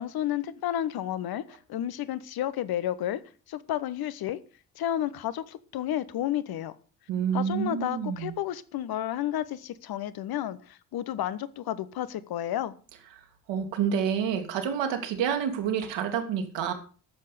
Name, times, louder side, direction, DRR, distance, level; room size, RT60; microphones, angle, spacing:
voice 1, 0.0-3.2 3.5-4.4 4.8-6.7 7.3-12.7, left 11 dB, 45° left, 1.1 m, -31 dB
voice 2, 7.1-8.3 13.5-16.7, right 8 dB, 60° right, 2.3 m, -28 dB
13.0 x 7.6 x 6.7 m
figure-of-eight pair, 40°, 50 cm